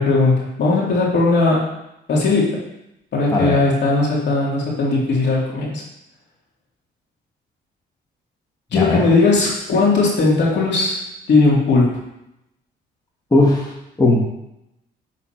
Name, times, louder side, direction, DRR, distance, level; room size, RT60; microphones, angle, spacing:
voice 1, 0.0-1.7 2.1-2.6 3.1-5.8 8.7-12.0, left 3 dB, 60° left, -4 dB, 2.3 m, -18 dB
voice 2, 8.7-9.1 13.3-13.7 14.0-14.3, left 2 dB, 20° left, -3 dB, 1.4 m, -17 dB
6.7 x 4.0 x 4.4 m, 0.84 s
cardioid pair, 90°, 20 cm